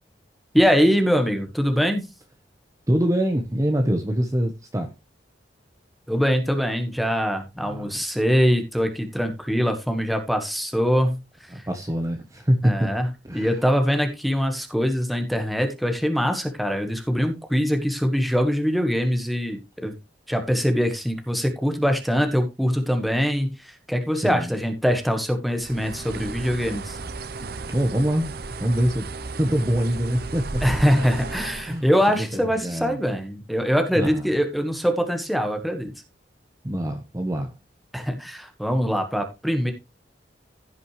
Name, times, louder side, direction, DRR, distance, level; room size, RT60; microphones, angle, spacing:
voice 1, 0.5-2.0 6.1-11.7 12.6-13.1 13.3-19.9 20.3-27.0 30.6-35.9 37.9-39.7, equal, ahead, 1.4 m, -23 dB
voice 2, 2.9-4.9 7.6-7.9 11.5-12.9 13.2-13.5 24.1-24.5 27.7-28.3 28.6-29.1 29.4-30.6 31.0-31.1 31.6-33.0 33.9-34.3 36.6-37.5, equal, 20° right, 1.1 m, -24 dB
Bird, 25.6-31.8, right 3 dB, 55° right, 0.7 m, -34 dB
15.5 x 6.0 x 3.2 m
head